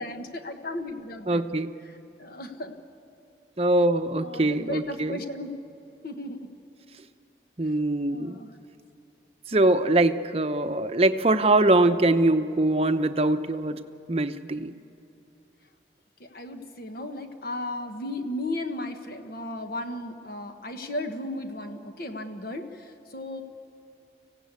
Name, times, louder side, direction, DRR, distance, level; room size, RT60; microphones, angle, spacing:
voice 1, 0.0-1.4 2.2-2.7 4.2-5.5 6.0-6.5 8.1-8.5 16.2-23.4, left 1 dB, 55° left, 6 dB, 1.4 m, -35 dB
voice 2, 1.3-1.7 3.6-5.2 7.6-8.4 9.5-13.8 14.1-14.7, right 2 dB, 35° right, 9 dB, 0.7 m, -23 dB
25.5 x 17.0 x 8.3 m, 2.9 s
head